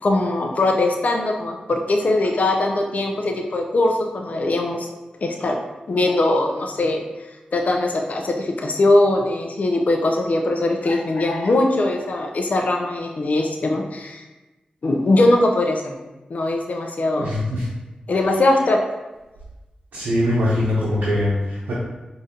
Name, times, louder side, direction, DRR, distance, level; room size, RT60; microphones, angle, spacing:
voice 1, 0.0-4.9 5.2-5.6 5.9-7.0 7.5-14.2 14.8-16.0 16.3-17.3 18.1-18.8, left 2 dB, 60° left, 2 dB, 0.5 m, -21 dB
voice 2, 17.2-17.7 19.9-21.7, left 1 dB, 90° right, -8 dB, 0.7 m, -22 dB
4.9 x 2.7 x 2.8 m, 1.1 s
cardioid pair, 45°, 3 cm